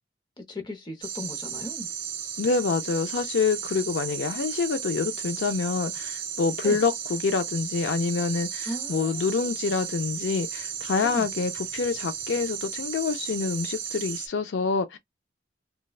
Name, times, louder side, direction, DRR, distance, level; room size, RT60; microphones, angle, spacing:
voice 1, 0.4-1.9 6.6-6.8 8.6-9.5 11.0-11.3, left 1 dB, 25° left, 0.8 m, -37 dB
sound 1, 1.0-14.3, right 8 dB, 65° right, 0.8 m, -34 dB
voice 2, 2.4-15.0, left 5 dB, 65° left, 0.4 m, -27 dB
3.2 x 2.2 x 2.3 m
head